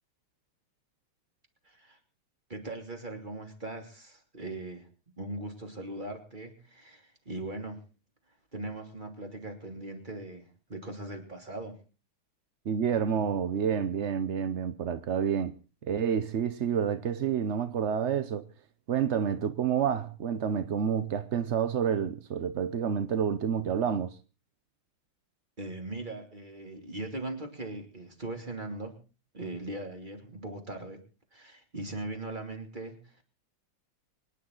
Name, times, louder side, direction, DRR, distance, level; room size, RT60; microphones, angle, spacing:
voice 1, 1.6-2.0 2.5-4.9 5.2-7.8 8.5-11.8 25.6-29.0 29.3-31.0 31.3-33.2, right 2 dB, 20° right, 3.2 m, -40 dB
voice 2, 12.7-15.5 15.9-18.5 18.9-24.2, right 7 dB, 60° right, 0.7 m, -29 dB
25.0 x 10.5 x 3.9 m
omnidirectional pair, 2.3 m